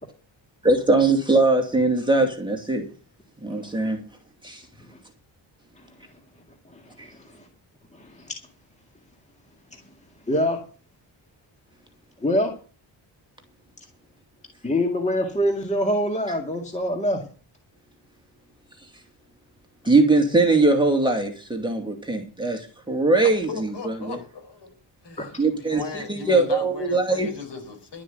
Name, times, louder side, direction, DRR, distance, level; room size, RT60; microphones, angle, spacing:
voice 1, 0.6-2.9 3.4-4.0 4.4-4.6 7.0-7.1 19.9-23.5 23.8-24.2 25.4-25.8 26.1-27.3, right 2 dB, 10° right, 2.5 m, -21 dB
voice 2, 6.7-7.5 7.9-8.4 10.3-10.6 12.2-12.5 14.6-17.2 25.2-25.4, equal, 15° left, 2.0 m, -25 dB
voice 3, 23.2-24.7 25.0-28.0, left 4 dB, 60° left, 4.7 m, -37 dB
12.0 x 7.6 x 8.1 m
wide cardioid pair, 135°, 47 cm